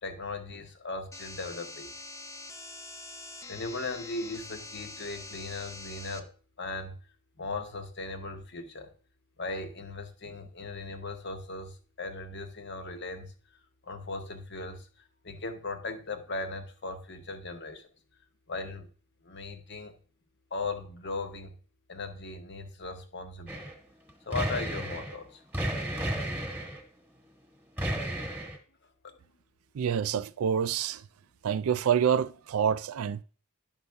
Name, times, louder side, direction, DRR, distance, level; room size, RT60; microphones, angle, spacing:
voice 1, 0.0-1.9 3.5-6.3 6.6-7.0 7.4-8.9 9.4-13.3 13.8-14.9 15.2-17.9 18.5-18.9 19.2-19.9 20.5-21.6 21.9-23.7 24.3-25.4, left 3 dB, 55° left, 1.0 m, -38 dB
sound 1, 1.1-6.2, left 3 dB, 15° left, 0.5 m, -44 dB
sound 2, 23.5-23.7 24.1-25.2 25.5-26.8 27.8-28.6, right 1 dB, 10° right, 1.4 m, -33 dB
voice 2, 29.7-31.0 31.4-33.2, right 8 dB, 80° right, 0.4 m, -27 dB
10.5 x 5.4 x 3.5 m
head